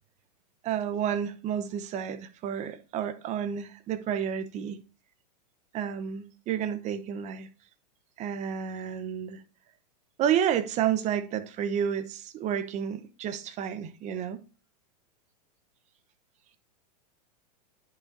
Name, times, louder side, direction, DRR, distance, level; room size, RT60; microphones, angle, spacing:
voice 1, 0.6-4.8 5.7-7.5 8.2-9.4 10.2-14.4, right 9 dB, 35° right, 0.9 m, -30 dB
9.9 x 5.9 x 2.6 m
hypercardioid pair, 115°, 21 cm